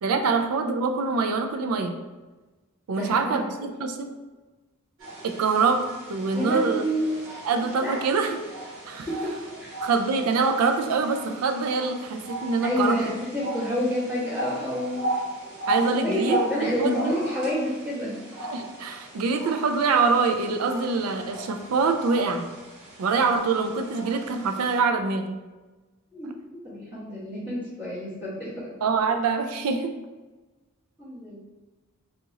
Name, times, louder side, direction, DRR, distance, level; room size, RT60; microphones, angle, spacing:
voice 1, 0.0-2.0 2.9-4.1 5.2-5.8 6.1-6.8 7.5-8.4 8.9-9.1 9.8-13.0 15.7-17.1 18.5-22.5 23.0-25.4 28.8-29.9, right 4 dB, 75° right, 6 dB, 0.4 m, -24 dB
voice 2, 2.9-3.4 6.3-7.1 7.8-8.0 9.1-9.9 12.6-15.1 16.0-18.3 26.1-26.3 26.6-28.8 31.0-31.4, equal, 10° right, -14 dB, 1.1 m, -29 dB
sound 1, 5.0-24.8, right 1 dB, 60° right, 1.3 m, -36 dB
2.8 x 2.4 x 3.9 m, 1.2 s
head